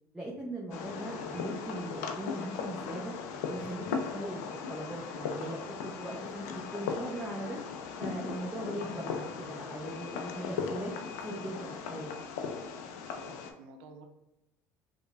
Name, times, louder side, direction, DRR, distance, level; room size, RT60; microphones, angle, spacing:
voice 1, 0.1-3.1 3.5-4.4 4.7-7.6 8.0-10.9 11.2-12.1, right 1 dB, 10° right, -3 dB, 0.6 m, -39 dB
Fireworks, 0.7-13.5, left 5 dB, 80° left, 0.3 m, -38 dB
voice 2, 13.1-14.1, right 4 dB, 70° right, 5 dB, 0.5 m, -51 dB
2.9 x 2.1 x 2.3 m, 0.91 s
hypercardioid pair, 75°, 9 cm